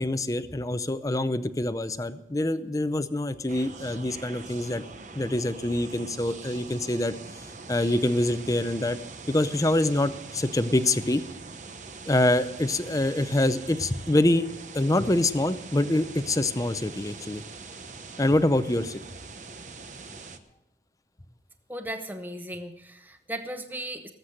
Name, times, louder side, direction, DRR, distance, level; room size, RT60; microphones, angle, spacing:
voice 1, 0.0-4.8 5.1-7.1 7.7-9.0 9.3-11.2 12.0-14.4 14.7-17.4 18.2-19.0, left 1 dB, 20° left, 12 dB, 0.6 m, -25 dB
sound 1, 3.5-20.4, right 3 dB, 45° right, 1.0 m, -43 dB
voice 2, 21.7-24.1, right 1 dB, 10° right, 7 dB, 1.0 m, -36 dB
19.5 x 8.1 x 6.5 m, 0.87 s
head